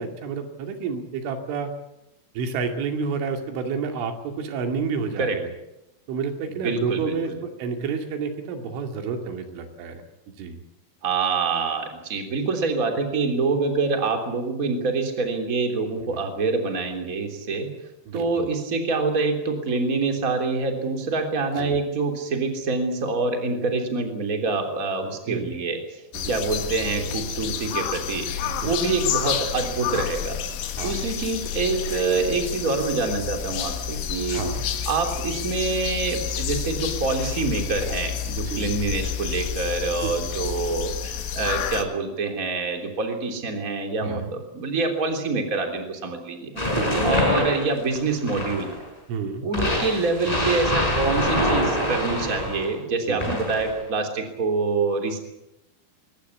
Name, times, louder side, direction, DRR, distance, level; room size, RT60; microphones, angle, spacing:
voice 1, 0.0-1.7 2.4-5.5 6.1-10.0 10.4-10.6 16.1-16.2 18.1-18.5 21.6-21.8 25.3-25.5 26.1-26.4 28.6-28.7 30.8-31.0 34.3-34.6 38.5-38.7 40.0-40.3 44.0-44.3 46.7-47.1 49.1-49.5 53.1-53.3, right 5 dB, 85° right, 5 dB, 4.8 m, -30 dB
voice 2, 6.6-7.4 11.0-17.7 18.1-26.0 26.3-28.3 28.6-30.4 30.8-34.5 34.8-46.6 47.0-48.8 49.4-55.2, right 3 dB, 20° right, 4 dB, 3.0 m, -26 dB
sound 1, 26.1-41.8, left 8 dB, 85° left, 4.1 m, -30 dB
sound 2, 46.6-48.8 49.5-52.7 53.2-53.8, left 1 dB, 10° left, 5.5 m, -25 dB
22.0 x 18.5 x 8.4 m, 0.91 s
omnidirectional pair, 5.4 m